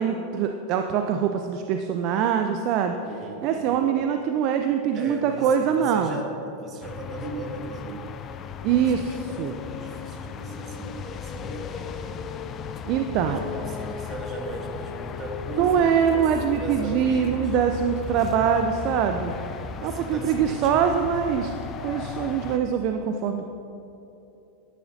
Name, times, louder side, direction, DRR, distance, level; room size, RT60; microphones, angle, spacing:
voice 1, 0.0-3.0 3.4-6.1 8.6-9.5 12.9-13.4 15.6-19.3 19.8-21.5 21.8-23.5, right 8 dB, 50° right, 6 dB, 0.5 m, -23 dB
voice 2, 3.0-3.9 4.9-8.2 8.7-8.9 9.3-12.0 13.2-16.2 16.6-17.6 19.6-20.8, right 2 dB, 30° right, 1 dB, 1.8 m, -38 dB
sound 1, 6.8-22.6, left 6 dB, 35° left, 0.5 m, -36 dB
12.5 x 10.5 x 2.8 m, 2.8 s
figure-of-eight pair, 85°, 0 cm